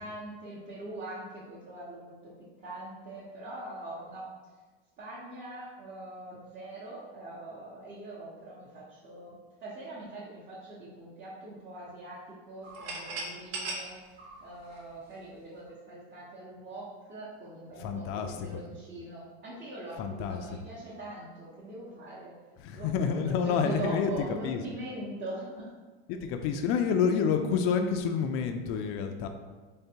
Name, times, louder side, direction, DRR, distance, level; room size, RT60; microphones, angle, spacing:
voice 1, 0.0-2.3 2.6-4.2 5.0-14.0 14.4-22.3 22.7-25.7, right 1 dB, 30° right, -8 dB, 0.9 m, -42 dB
sound 1, 12.6-15.4, right 3 dB, 90° right, 0.9 m, -39 dB
voice 2, 17.8-18.6 20.0-20.5 22.6-24.1 24.4-24.6 26.2-29.3, left 6 dB, 45° left, 6 dB, 0.4 m, -28 dB
3.6 x 3.4 x 2.8 m, 1.3 s
supercardioid pair, 130°, 30 cm